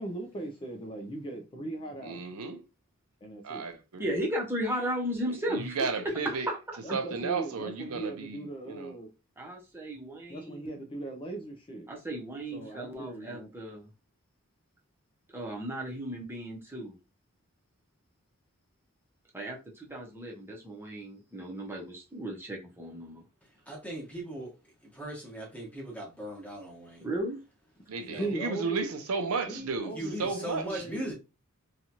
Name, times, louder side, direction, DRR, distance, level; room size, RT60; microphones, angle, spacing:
voice 1, 0.0-2.3 3.2-3.7 6.8-9.1 10.3-11.9 12.5-13.5 28.1-28.8 29.5-31.1, right 2 dB, 25° left, 0.4 m, -39 dB
voice 2, 2.0-2.6 3.4-4.1 5.3-6.5 6.9-8.9 27.9-30.8, right 4 dB, 80° right, 0.6 m, -34 dB
voice 3, 4.0-5.9 6.5-6.6 9.4-10.8 11.9-13.9 15.3-17.0 19.3-23.2 27.0-27.4, equal, 10° right, 0.8 m, -35 dB
voice 4, 23.7-24.5 24.9-27.1 28.0-28.3 29.9-31.1, right 1 dB, 5° left, 1.1 m, -39 dB
2.8 x 2.3 x 2.8 m
head